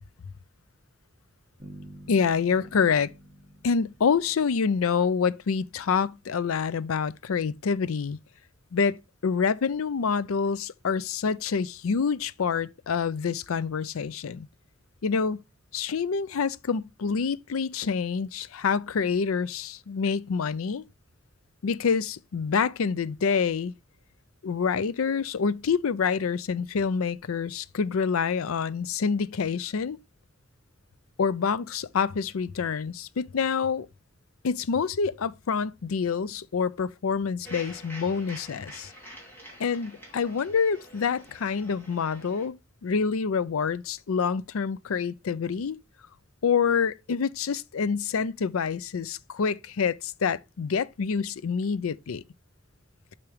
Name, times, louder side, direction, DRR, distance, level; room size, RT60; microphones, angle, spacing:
sound 1, 1.6-5.3, right 1 dB, 25° right, 1.6 m, -49 dB
voice 1, 2.1-3.1 3.6-8.2 8.7-14.5 15.0-15.4 15.7-20.8 21.6-23.7 24.4-30.0 31.2-33.9 34.4-38.9 39.6-42.6 42.8-45.8 46.4-52.2, left 6 dB, 90° left, 0.5 m, -27 dB
sound 2, 37.4-42.5, right 1 dB, 10° left, 2.8 m, -46 dB
6.8 x 5.9 x 3.2 m
head